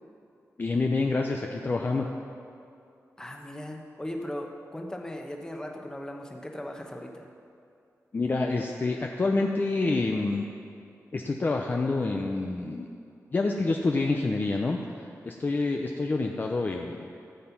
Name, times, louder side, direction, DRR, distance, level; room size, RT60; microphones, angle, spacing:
voice 1, 0.6-2.1 8.1-10.5 11.1-12.9 13.3-17.1, left 3 dB, 35° left, 2 dB, 0.6 m, -27 dB
voice 2, 3.2-7.2, left 1 dB, 10° left, 2 dB, 1.1 m, -38 dB
13.5 x 7.6 x 5.9 m, 2.5 s
wide cardioid pair, 145°, 6 cm